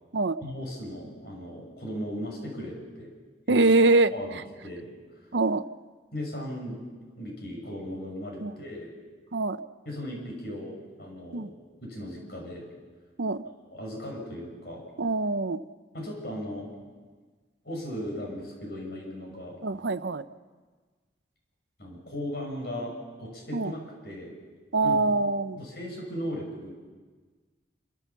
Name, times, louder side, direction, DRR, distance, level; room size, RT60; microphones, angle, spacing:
voice 1, 0.4-3.1 3.5-3.7 4.1-5.3 6.1-6.9 7.1-8.9 9.8-11.5 11.8-12.7 13.6-14.8 15.9-16.7 17.0-17.1 17.6-19.5 21.8-22.9 23.2-23.8 24.0-24.3 24.8-25.0 25.6-26.8, equal, 55° left, -1 dB, 6.5 m, -37 dB
voice 2, 3.5-4.1 5.3-5.6 8.4-8.5 9.3-9.6 11.3-11.5 13.2-13.4 15.0-15.6 19.6-20.2 23.5-23.7 24.7-25.6, right 3 dB, 70° right, 12 dB, 0.7 m, -24 dB
28.0 x 14.5 x 7.2 m, 1.4 s
head